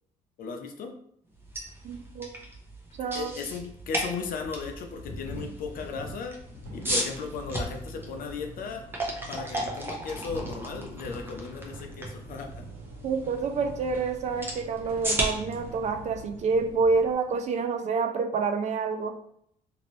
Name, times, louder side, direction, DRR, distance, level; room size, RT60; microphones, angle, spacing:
voice 1, 0.4-0.9 3.1-6.4 6.7-8.8 9.3-12.6, left 5 dB, 55° left, 3 dB, 0.6 m, -36 dB
sound 1, 1.3-17.3, right 1 dB, 15° right, 0.7 m, -36 dB
voice 2, 1.8-2.3 3.0-3.3 13.0-19.1, right 4 dB, 45° right, 5 dB, 0.4 m, -28 dB
sound 2, 2.2-2.3 2.9-3.0 3.6-3.7 4.4-7.7 8.0-8.5 9.2-12.7 13.0-13.3, left 1 dB, 40° left, 1.0 m, -44 dB
sound 3, 5.8-17.1, right 3 dB, 85° right, 0.7 m, -47 dB
2.9 x 2.6 x 3.0 m, 0.69 s
cardioid pair, 110°, 17 cm